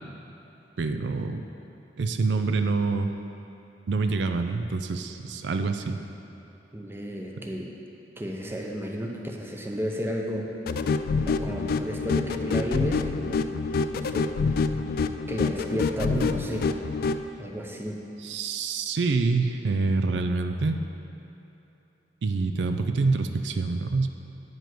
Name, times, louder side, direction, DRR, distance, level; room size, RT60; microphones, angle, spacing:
voice 1, 0.8-1.4 2.0-3.1 3.9-6.0 18.2-20.8 22.2-24.1, right 3 dB, 80° right, 7 dB, 0.4 m, -26 dB
voice 2, 6.7-7.8 8.2-10.5 11.2-13.5 13.9-14.5 15.3-16.7 17.4-18.1, equal, 15° right, 0 dB, 0.7 m, -32 dB
sound 1, 10.7-17.2, left 4 dB, 55° left, 0.3 m, -27 dB
9.1 x 5.2 x 6.0 m, 3.0 s
head